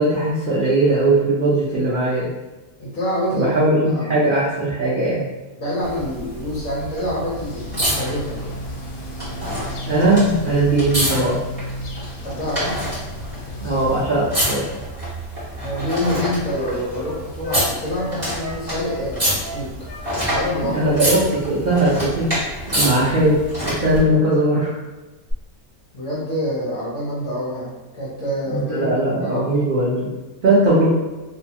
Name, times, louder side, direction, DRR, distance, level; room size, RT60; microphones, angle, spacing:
voice 1, 0.0-2.3 3.3-5.2 9.9-11.4 13.6-14.6 20.6-22.3 22.7-23.4 23.7-24.7 28.5-30.1 30.4-30.9, right 1 dB, 75° right, -7 dB, 0.4 m, -19 dB
voice 2, 2.8-3.5 3.9-4.2 5.6-8.7 12.2-12.9 15.6-20.8 25.9-29.6, equal, 55° left, -6 dB, 1.1 m, -27 dB
sound 1, 5.8-24.0 25.3-25.4, equal, 10° right, 1.1 m, -28 dB
sound 2, 7.4-14.0, equal, 80° left, 1.1 m, -33 dB
Wind instrument woodwind instrument, 15.7-17.6 17.9-19.0 19.4-20.0 20.3-20.9 21.2-21.4 21.7-22.3 22.6-22.8, left 2 dB, 25° left, 1.1 m, -33 dB
2.7 x 2.2 x 2.7 m, 1.2 s
omnidirectional pair, 1.6 m